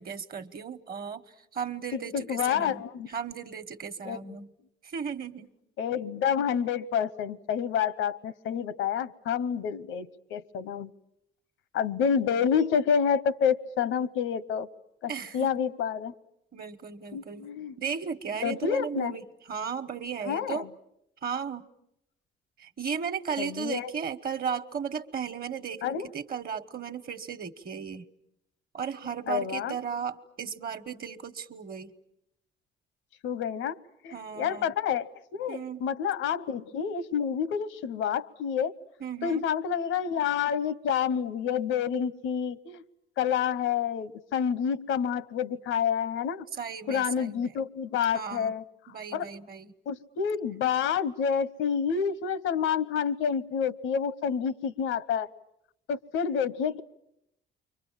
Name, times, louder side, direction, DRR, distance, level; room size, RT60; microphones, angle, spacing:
voice 1, 0.0-4.5 4.8-5.5 15.1-15.6 16.5-17.5 17.8-20.7 21.2-21.7 22.6-28.1 28.7-31.9 34.1-34.7 35.5-35.8 39.0-39.4 46.5-47.5 48.1-48.5 48.9-49.7, right 7 dB, 50° right, 12 dB, 1.2 m, -35 dB
voice 2, 1.9-3.1 4.0-4.3 5.8-10.9 11.7-14.7 15.0-16.1 17.1-17.7 18.4-19.2 20.2-20.7 23.4-23.9 25.8-26.1 29.3-29.7 33.2-33.8 34.0-38.7 39.2-42.8 43.2-46.5 46.9-49.3 49.9-55.3 55.9-56.8, left 7 dB, 90° left, 16 dB, 1.0 m, -28 dB
29.5 x 24.0 x 7.3 m, 0.80 s
cardioid pair, 90°, 20 cm